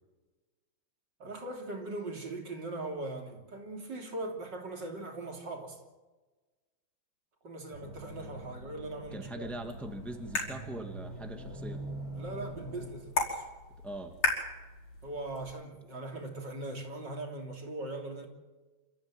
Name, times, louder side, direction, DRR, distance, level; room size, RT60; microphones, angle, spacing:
voice 1, 1.2-5.8 7.4-9.5 12.1-13.4 15.0-18.3, right 2 dB, 55° right, 3.8 m, -40 dB
sound 1, 7.7-12.9, right 1 dB, 85° right, 5.0 m, -44 dB
voice 2, 9.1-11.8 13.8-14.2, right 1 dB, ahead, 2.0 m, -41 dB
sound 2, 9.4-15.5, left 3 dB, 85° left, 5.9 m, -37 dB
27.5 x 14.5 x 9.1 m
omnidirectional pair, 2.3 m